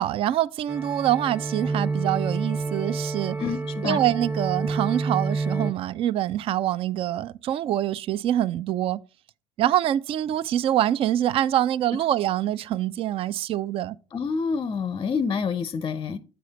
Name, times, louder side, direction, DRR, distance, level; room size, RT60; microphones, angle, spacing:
voice 1, 0.0-3.4 3.8-9.0 9.6-14.0, right 12 dB, 45° right, 0.4 m, -25 dB
sound 1, 0.7-5.7, right 3 dB, 10° right, 0.8 m, -29 dB
voice 2, 3.4-4.0 14.1-16.2, left 5 dB, 30° left, 0.5 m, -27 dB
7.8 x 4.8 x 3.9 m
hypercardioid pair, 65°, 13 cm